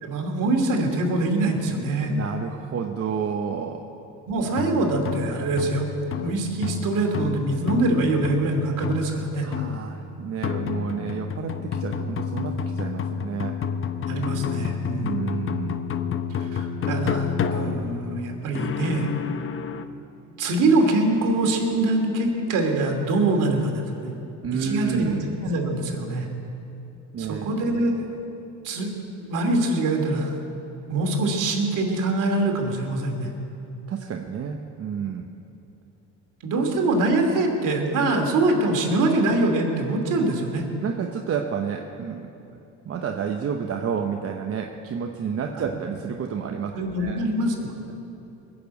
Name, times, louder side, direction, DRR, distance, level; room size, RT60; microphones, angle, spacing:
voice 1, 0.0-2.2 4.3-5.9 6.2-9.5 14.1-15.2 16.4-19.1 20.4-24.1 24.6-26.3 27.2-28.1 28.6-28.9 29.2-30.3 30.9-33.3 36.4-40.6 45.5-45.6 46.7-47.9, right 2 dB, 60° right, 1 dB, 2.9 m, -24 dB
voice 2, 2.1-3.9 9.4-13.6 15.0-15.8 24.4-25.2 27.1-27.5 33.9-35.3 40.8-46.7 47.0-47.2 47.9-48.0, right 7 dB, 40° right, 2 dB, 1.0 m, -30 dB
sound 1, 4.4-19.8, left 6 dB, 35° left, 0.8 m, -30 dB
20.5 x 7.2 x 8.3 m, 2.9 s
supercardioid pair, 90°, 36 cm